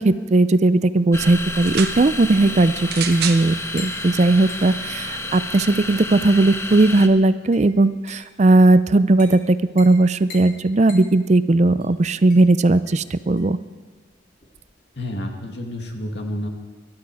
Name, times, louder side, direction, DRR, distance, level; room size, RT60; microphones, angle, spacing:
voice 1, 0.0-13.6, right 2 dB, 40° right, 14 dB, 0.5 m, -17 dB
sound 1, 1.1-7.1, left 1 dB, 15° left, 0.9 m, -30 dB
sound 2, 1.5-2.0 2.9-3.5 4.3-4.4, right 8 dB, 55° right, 1.0 m, -28 dB
sound 3, 3.1-15.2, left 3 dB, 50° left, 3.8 m, -46 dB
voice 2, 15.0-16.5, left 1 dB, 65° left, 2 dB, 2.2 m, -29 dB
23.5 x 11.5 x 4.8 m, 1.3 s
head